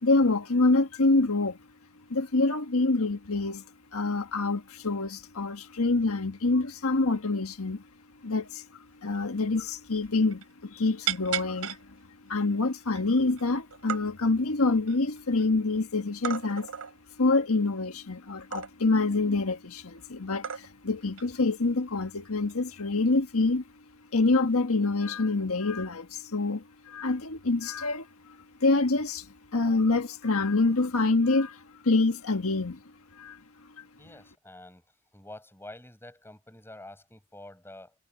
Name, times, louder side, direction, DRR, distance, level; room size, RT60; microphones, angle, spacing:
voice 1, 0.0-1.6 2.1-3.6 3.9-7.8 8.2-8.6 9.0-11.8 12.2-16.7 17.2-23.6 24.1-28.1 28.6-29.2 29.5-32.8 33.2-33.4, left 3 dB, 75° left, 1.5 m, -26 dB
sound 1, 9.2-9.3 9.5-9.7 10.0-10.5 11.1-11.8 12.4-12.5 12.9-13.4 13.7-14.0 14.6-15.5 16.2-16.9 18.5-19.0 19.9-20.0 20.4-20.9 21.2-21.4 22.4-22.7, right 10 dB, 75° right, 3.2 m, -34 dB
voice 2, 34.0-34.8 35.1-38.0, left 1 dB, 10° left, 7.5 m, -47 dB
head